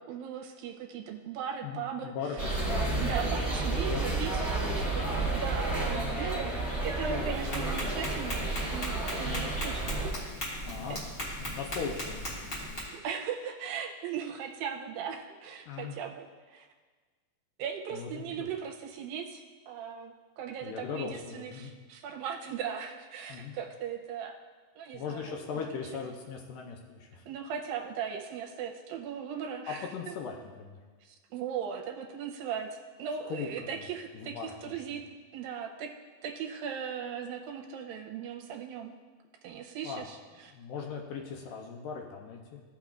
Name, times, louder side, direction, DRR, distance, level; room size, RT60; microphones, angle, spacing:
voice 1, 0.0-2.1 3.0-4.3 4.8-6.5 6.8-10.1 10.9-11.0 13.0-16.7 17.6-24.4 24.8-25.3 27.3-30.1 31.0-35.0 35.3-35.9 36.2-39.0 39.4-40.5, right 7 dB, 80° right, 1 dB, 2.3 m, -38 dB
voice 2, 1.6-3.1 3.7-4.1 5.9-6.2 7.1-7.4 9.2-9.5 10.6-12.7 15.7-16.0 17.9-18.5 20.6-21.7 23.3-23.6 24.9-27.2 29.7-30.8 33.3-33.7 34.1-35.0 39.8-40.1 40.5-42.6, left 6 dB, 85° left, 0 dB, 1.9 m, -39 dB
sound 1, 2.4-10.1, right 2 dB, 10° left, 1.2 m, -31 dB
Tap, 7.3-12.8, equal, 40° left, 1.2 m, -38 dB
15.0 x 5.8 x 2.4 m, 1.4 s
omnidirectional pair, 4.4 m